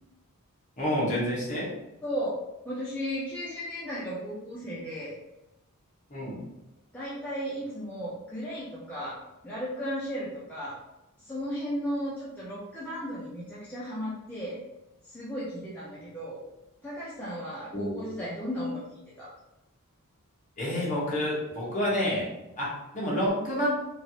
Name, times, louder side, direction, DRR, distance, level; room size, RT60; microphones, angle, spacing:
voice 1, 0.8-1.7 6.1-6.4 17.7-18.2 20.6-22.3 22.6-23.7, equal, 35° left, -6 dB, 1.0 m, -29 dB
voice 2, 2.0-2.4 2.6-5.1 6.9-9.2 9.4-10.7 11.2-14.6 15.0-16.4 16.8-18.9 19.2-19.3, equal, 5° left, -9 dB, 0.5 m, -35 dB
3.1 x 2.5 x 2.7 m, 0.95 s
head